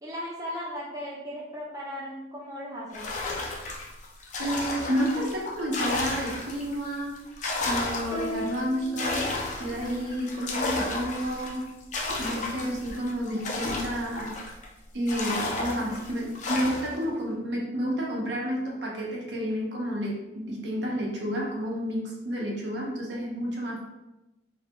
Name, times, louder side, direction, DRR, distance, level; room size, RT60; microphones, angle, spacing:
voice 1, 0.0-3.1, equal, 20° right, -5 dB, 0.5 m, -37 dB
sound 1, 2.9-6.8 7.2-14.7 15.1-17.0, left 2 dB, 40° left, 0.4 m, -33 dB
voice 2, 4.4-7.2 7.6-9.3 9.6-11.6 12.1-14.4 14.9-23.8, equal, 65° right, -2 dB, 0.7 m, -30 dB
sound 2, 8.1-9.9, left 1 dB, 60° left, 0.8 m, -36 dB
3.2 x 2.2 x 2.9 m, 0.97 s
head